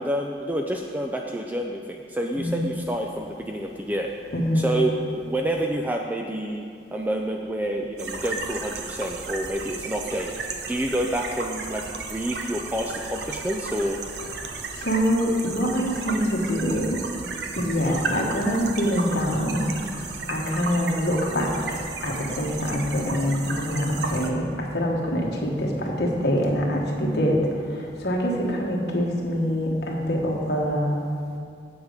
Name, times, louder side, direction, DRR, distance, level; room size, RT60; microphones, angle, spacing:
voice 1, 0.0-4.1 4.5-6.7 6.9-10.3 10.7-11.8 12.1-14.0, right 1 dB, 10° right, 1 dB, 0.3 m, -28 dB
voice 2, 2.4-2.7 4.3-4.7 14.3-14.5 14.8-17.0 17.6-19.6 20.3-27.4 28.0-31.0, equal, 60° left, -1 dB, 1.3 m, -25 dB
sound 1, 8.0-24.3, right 4 dB, 60° right, 0.7 m, -34 dB
8.1 x 7.2 x 5.1 m, 2.4 s
head